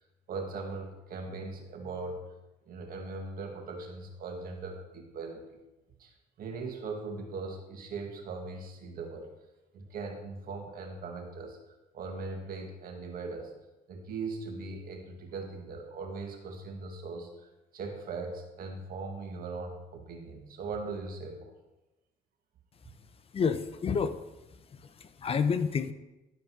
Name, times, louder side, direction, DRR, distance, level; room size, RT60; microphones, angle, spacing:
voice 1, 0.3-2.3 2.7-5.6 6.0-6.1 6.4-9.3 9.7-11.6 11.9-13.5 13.9-21.5, right 3 dB, 60° right, 3 dB, 1.9 m, -39 dB
voice 2, 23.3-24.2 24.5-25.9, left 6 dB, 35° left, 11 dB, 0.8 m, -30 dB
12.0 x 5.2 x 6.1 m, 1.0 s
cardioid pair, 110°, 17 cm